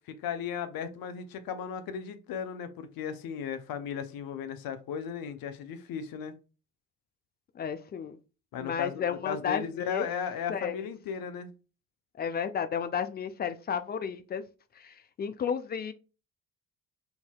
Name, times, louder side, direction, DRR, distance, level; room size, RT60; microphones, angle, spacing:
voice 1, 0.1-6.4 8.5-11.5, left 7 dB, 50° left, 0.7 m, -36 dB
voice 2, 7.6-8.2 8.6-10.0 10.5-10.8 12.2-14.4 14.8-15.9, left 7 dB, 25° left, 0.3 m, -32 dB
4.6 x 2.7 x 2.3 m
hypercardioid pair, 50°, 46 cm